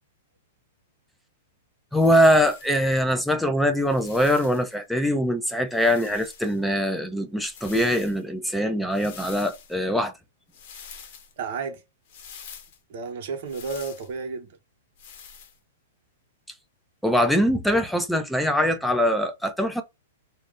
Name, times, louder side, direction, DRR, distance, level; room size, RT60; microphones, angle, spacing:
sound 1, 1.9-2.9 3.7-4.8 5.7-6.6 7.4-8.2 8.9-9.8 10.5-11.3 12.1-12.8 13.5-14.1 15.0-15.6, left 7 dB, 55° left, 0.8 m, -45 dB
voice 1, 1.9-10.1 17.0-19.8, equal, ahead, 0.5 m, -22 dB
voice 2, 11.4-11.8 12.9-14.5, right 5 dB, 55° right, 0.9 m, -32 dB
2.5 x 2.0 x 3.7 m
hypercardioid pair, 120°, 0 cm